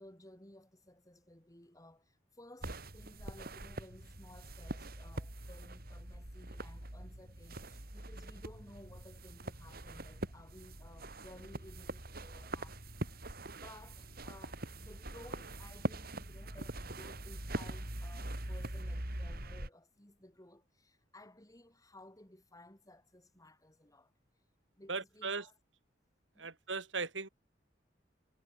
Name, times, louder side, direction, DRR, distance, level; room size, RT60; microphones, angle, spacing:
voice 1, 0.0-12.8 13.5-24.1 24.8-25.5 26.3-26.5, left 1 dB, 20° left, 5.2 m, -57 dB
sound 1, 2.6-19.7, right 1 dB, 55° right, 4.1 m, -43 dB
voice 2, 24.9-25.5 26.4-27.3, right 4 dB, 80° right, 3.1 m, -38 dB
head